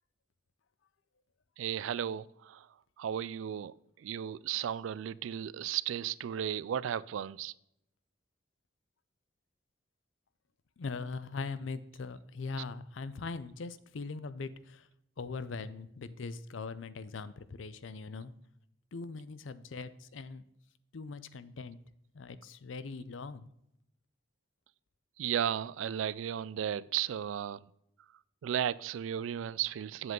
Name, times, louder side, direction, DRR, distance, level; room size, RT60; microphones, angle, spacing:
voice 1, 1.6-2.7 3.0-7.5 25.2-27.6 28.4-30.1, right 9 dB, 90° right, 19 dB, 0.3 m, -34 dB
voice 2, 10.8-14.9 15.2-18.3 18.9-20.4 20.9-21.8 22.1-23.5, left 4 dB, 80° left, 15 dB, 0.5 m, -41 dB
7.8 x 7.7 x 3.7 m, 0.78 s
head